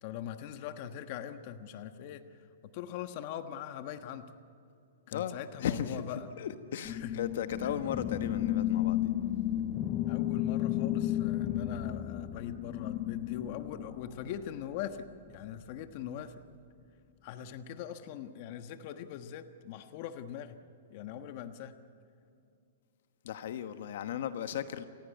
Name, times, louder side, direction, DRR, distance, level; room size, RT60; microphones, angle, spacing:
voice 1, 0.0-2.2 2.7-4.3 5.1-6.3 6.9-7.2 10.1-16.3 17.2-20.6 20.9-21.8, left 9 dB, 40° left, 8 dB, 1.3 m, -41 dB
voice 2, 5.1-6.0 6.4-9.1 23.2-24.8, left 9 dB, 65° left, 9 dB, 1.2 m, -36 dB
sound 1, 6.8-14.6, left 12 dB, 25° left, 0.9 m, -33 dB
28.5 x 15.5 x 9.5 m, 2.6 s
hypercardioid pair, 155°, 0 cm